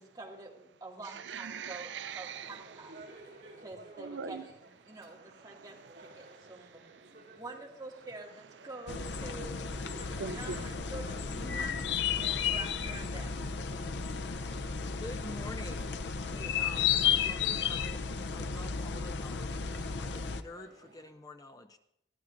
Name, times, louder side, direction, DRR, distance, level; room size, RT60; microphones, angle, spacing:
voice 1, 0.0-2.9 3.6-6.8 7.3-11.8 12.1-13.3, right 2 dB, 20° right, -1 dB, 2.1 m, -47 dB
voice 2, 1.0-3.6 4.0-4.5 4.9-5.0 5.3-7.4 10.1-10.7, right 6 dB, 85° right, 13 dB, 0.5 m, -44 dB
sound 1, 2.3-21.1, right 2 dB, 60° right, 3.2 m, -57 dB
sound 2, 8.9-20.4, left 7 dB, 75° left, 0.6 m, -33 dB
voice 3, 15.0-18.0 18.3-21.8, left 2 dB, 20° left, 8 dB, 0.5 m, -48 dB
21.5 x 14.0 x 2.6 m, 0.78 s
head